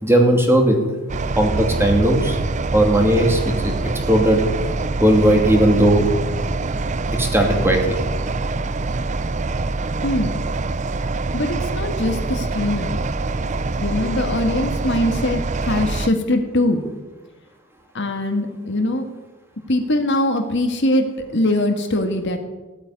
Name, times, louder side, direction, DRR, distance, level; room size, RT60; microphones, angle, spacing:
voice 1, 0.0-0.8 1.3-2.4 2.7-3.7 4.1-4.5 5.0-6.1 7.1-8.0, right 1 dB, 10° right, 2 dB, 2.7 m, -17 dB
sound 1, 1.1-16.1, right 3 dB, 30° right, 0.5 m, -25 dB
voice 2, 10.0-10.4 11.3-13.0 13.8-16.8 17.9-19.1 19.7-22.4, left 1 dB, 50° left, 4 dB, 1.9 m, -22 dB
17.0 x 8.8 x 9.6 m, 1.2 s
head